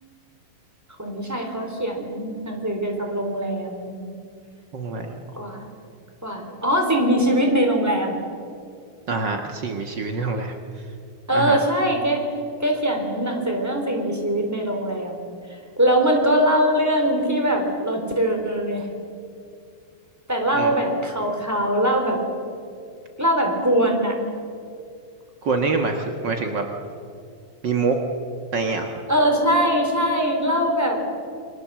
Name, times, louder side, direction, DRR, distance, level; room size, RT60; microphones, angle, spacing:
voice 1, 1.0-4.0 5.4-5.7 6.2-8.2 11.3-12.3 12.6-18.9 20.3-22.2 23.2-24.2 29.1-31.0, equal, 5° right, 2 dB, 3.4 m, -22 dB
voice 2, 4.7-5.2 9.1-10.8 11.3-11.6 20.5-20.7 25.4-26.7 27.6-28.0 28.5-29.0, right 4 dB, 70° right, 4 dB, 1.0 m, -25 dB
29.0 x 23.5 x 7.6 m, 2.4 s
omnidirectional pair, 4.5 m